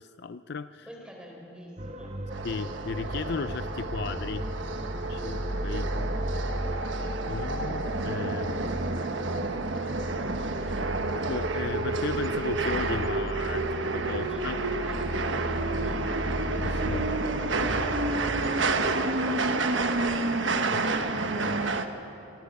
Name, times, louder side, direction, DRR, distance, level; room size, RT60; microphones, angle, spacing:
voice 1, 0.0-0.9 2.4-4.5 5.1-6.1 7.3-8.6 10.6-10.8 11.3-14.6 16.6-17.1 19.5-19.6 20.7-20.8 21.1-21.6, left 4 dB, 55° left, 12 dB, 0.4 m, -36 dB
voice 2, 0.9-2.2 14.1-17.7, equal, 5° right, -1 dB, 4.0 m, -46 dB
sound 1, 1.8-18.7, right 1 dB, 30° right, 1.0 m, -35 dB
sound 2, 2.3-21.9, right 3 dB, 70° right, 1.2 m, -30 dB
26.5 x 22.5 x 5.4 m, 2.9 s
head